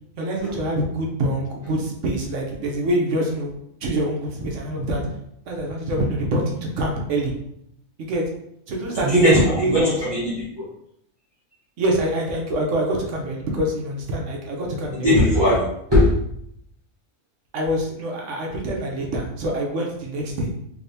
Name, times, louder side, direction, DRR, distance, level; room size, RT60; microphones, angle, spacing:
voice 1, 0.2-3.5 3.8-5.0 5.5-7.4 8.0-8.2 8.7-10.0 11.8-15.1 17.5-20.5, right 1 dB, 65° right, 0 dB, 1.0 m, -25 dB
voice 2, 9.0-9.4 9.7-10.6 15.0-15.6 15.9-16.1, equal, 20° right, -10 dB, 1.0 m, -18 dB
3.4 x 3.3 x 2.7 m, 0.75 s
omnidirectional pair, 1.5 m